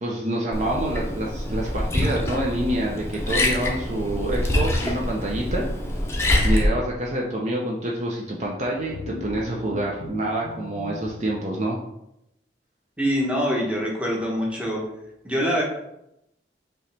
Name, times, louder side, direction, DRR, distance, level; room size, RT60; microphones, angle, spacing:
voice 1, 0.0-5.7 6.4-11.8, right 1 dB, 40° right, -2 dB, 0.6 m, -27 dB
Liquid, 0.5-6.7, left 1 dB, 15° left, 0.6 m, -25 dB
sound 1, 8.8-11.2, left 3 dB, 85° left, 0.5 m, -38 dB
voice 2, 13.0-14.8 15.2-15.6, equal, 5° right, -3 dB, 0.9 m, -24 dB
5.1 x 3.0 x 3.3 m, 0.83 s
head